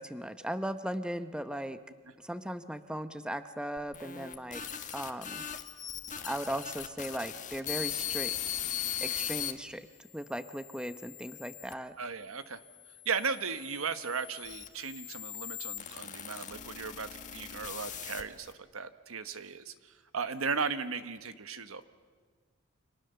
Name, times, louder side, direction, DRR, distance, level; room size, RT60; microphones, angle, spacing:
voice 1, 0.0-1.8 2.2-4.6 4.9-5.4 6.2-8.3 9.0-9.9 10.1-11.9, equal, 5° right, 10 dB, 0.8 m, -37 dB
sound 1, 3.8-9.5 10.2-11.7 12.5-18.5, left 10 dB, 35° left, 1.6 m, -39 dB
voice 2, 12.0-12.6 13.0-21.8, right 5 dB, 70° right, 11 dB, 1.3 m, -36 dB
29.5 x 26.0 x 6.9 m, 1.5 s
head